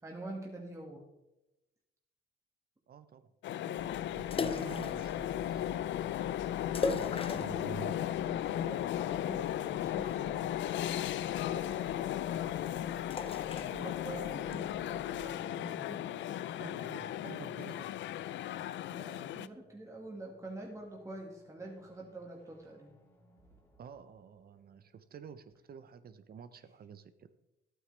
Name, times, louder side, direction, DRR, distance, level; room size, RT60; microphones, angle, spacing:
voice 1, 0.0-1.0 6.7-10.7 11.3-16.4 17.1-17.5 18.9-22.9, right 2 dB, 15° right, -1 dB, 2.0 m, -47 dB
voice 2, 2.9-5.7 7.3-8.3 16.6-17.9 23.8-27.3, right 7 dB, 50° right, 12 dB, 0.7 m, -49 dB
sound 1, 3.4-19.5, left 12 dB, 70° left, 0.4 m, -36 dB
sound 2, 3.8-15.3, left 4 dB, 30° left, 0.6 m, -42 dB
sound 3, 19.4-25.0, right 1 dB, 10° left, 2.4 m, -66 dB
11.5 x 9.0 x 3.4 m, 0.96 s
cardioid pair, 90°, 20 cm